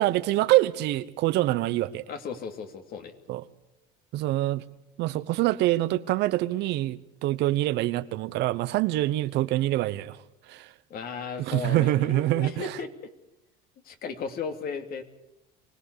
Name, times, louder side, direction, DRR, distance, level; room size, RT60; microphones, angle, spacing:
voice 1, 0.0-2.0 3.3-3.4 4.1-4.6 5.0-10.2 10.5-10.7 11.4-12.7, right 16 dB, 65° right, 1.0 m, -25 dB
voice 2, 2.1-3.1 10.9-12.9 13.8-15.0, left 5 dB, 55° left, 2.7 m, -35 dB
24.0 x 18.0 x 8.3 m
supercardioid pair, 110°, 19 cm